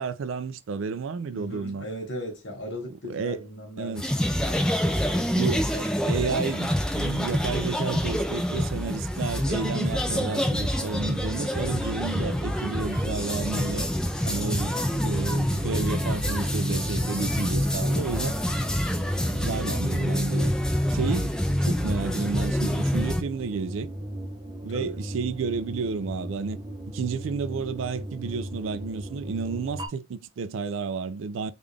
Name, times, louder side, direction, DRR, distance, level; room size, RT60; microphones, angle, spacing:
voice 1, 0.0-1.9 3.0-3.4 3.8-4.1 5.3-13.9 14.3-18.3 19.4-20.5 20.9-23.9 24.6-26.6 26.9-31.5, right 5 dB, 75° right, 0.4 m, -31 dB
voice 2, 1.3-4.1 4.4-5.4 19.1-19.5 24.7-25.0, equal, 60° left, 1.5 m, -38 dB
sound 1, 4.0-23.2, equal, 5° left, 0.4 m, -27 dB
sound 2, 10.1-29.9, right 1 dB, 20° right, 0.7 m, -37 dB
3.7 x 2.4 x 3.4 m
head